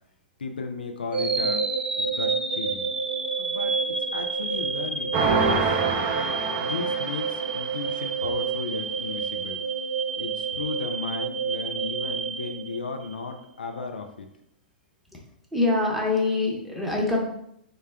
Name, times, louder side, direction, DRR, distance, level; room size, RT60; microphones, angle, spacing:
voice 1, 0.4-1.7 2.0-2.9 3.4-3.7 4.0-5.8 6.4-9.6 10.2-14.3, left 4 dB, 80° left, 5 dB, 0.4 m, -35 dB
sound 1, 1.1-13.2, right 5 dB, 90° right, 0.4 m, -29 dB
sound 2, 5.1-7.9, right 4 dB, 35° right, 0.5 m, -26 dB
voice 2, 15.5-17.3, left 2 dB, ahead, -3 dB, 0.8 m, -24 dB
3.7 x 2.1 x 3.3 m, 0.75 s
figure-of-eight pair, 105°, 5 cm